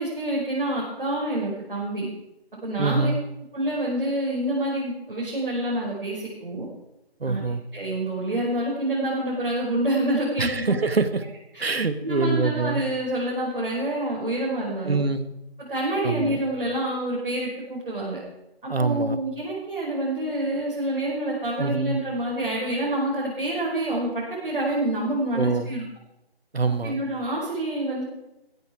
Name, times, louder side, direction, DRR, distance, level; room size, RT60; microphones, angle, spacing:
voice 1, 0.0-2.1 2.6-3.1 3.5-6.7 7.2-7.4 7.7-10.8 11.5-11.7 12.0-15.0 15.7-18.2 18.6-25.8 26.8-28.0, right 1 dB, 55° right, -6 dB, 5.6 m, -27 dB
voice 2, 2.8-3.2 7.2-7.6 10.4-11.2 11.6-12.9 14.8-15.4 16.0-16.4 18.7-19.2 21.6-22.0 25.3-25.7 26.5-27.0, right 3 dB, 70° right, 11 dB, 1.6 m, -25 dB
15.5 x 12.5 x 4.7 m, 0.88 s
figure-of-eight pair, 170°, 31 cm